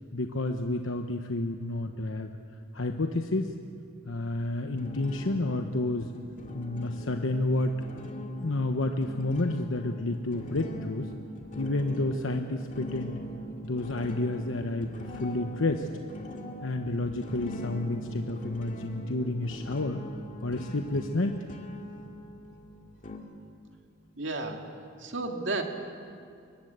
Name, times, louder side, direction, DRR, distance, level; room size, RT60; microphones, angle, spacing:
voice 1, 0.1-2.4 2.7-3.6 4.1-6.1 6.5-7.7 8.4-11.1 11.6-13.2 13.6-15.9 16.6-20.0 20.4-21.4, left 2 dB, 85° left, 5 dB, 1.0 m, -30 dB
sound 1, 4.8-23.2, equal, 40° left, 2.2 m, -42 dB
voice 2, 24.2-24.7 25.0-25.6, right 3 dB, 65° right, 3 dB, 2.2 m, -32 dB
23.5 x 19.5 x 8.1 m, 2.4 s
head